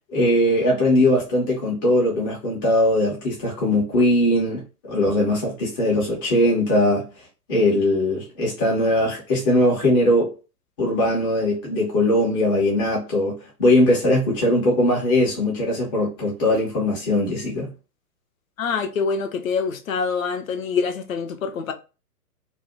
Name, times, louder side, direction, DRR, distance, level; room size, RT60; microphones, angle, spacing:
voice 1, 0.1-7.1 7.5-10.3 10.8-17.7, left 1 dB, 15° left, 0.5 m, -20 dB
voice 2, 18.6-21.7, left 5 dB, 60° left, 0.6 m, -25 dB
2.6 x 2.1 x 2.5 m
figure-of-eight pair, 115°, 47 cm